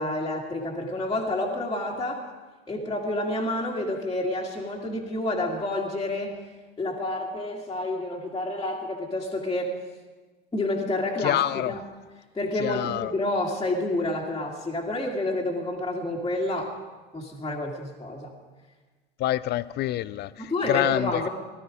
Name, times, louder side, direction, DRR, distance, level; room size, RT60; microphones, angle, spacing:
voice 1, 0.0-2.2 2.7-6.4 6.8-9.7 10.5-11.8 12.3-16.7 17.1-18.3 20.4-21.3, left 1 dB, 15° left, -4 dB, 2.3 m, -29 dB
voice 2, 11.2-11.7 12.6-13.1 19.2-20.3 20.7-21.3, left 14 dB, 35° left, 17 dB, 0.5 m, -26 dB
19.0 x 12.5 x 5.1 m, 1.3 s
hypercardioid pair, 80°, 30 cm